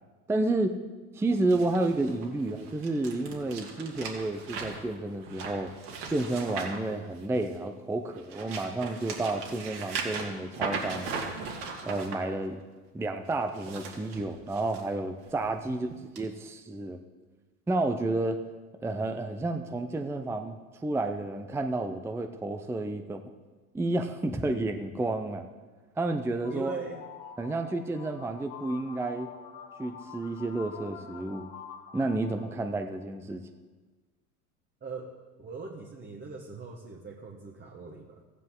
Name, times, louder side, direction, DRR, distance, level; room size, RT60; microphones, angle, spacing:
voice 1, 0.3-0.7 1.1-5.7 6.1-11.1 11.9-12.6 12.9-15.9 16.2-17.0 17.7-18.4 18.8-20.6 20.8-23.2 23.7-25.5 26.0-26.7 27.4-29.3 29.8-31.5 31.9-33.4, right 2 dB, 5° right, 7 dB, 0.6 m, -30 dB
sound 1, 1.5-7.6 8.1-12.2 13.4-14.8 15.3-15.5 16.2-16.3, right 5 dB, 55° right, 2.7 m, -38 dB
sound 2, 26.3-33.1, left 7 dB, 45° left, 1.7 m, -47 dB
voice 2, 26.5-27.0 34.8-35.1 35.4-38.2, right 4 dB, 25° right, 1 dB, 1.4 m, -40 dB
15.0 x 9.8 x 3.8 m, 1.3 s
hypercardioid pair, 85°, 45 cm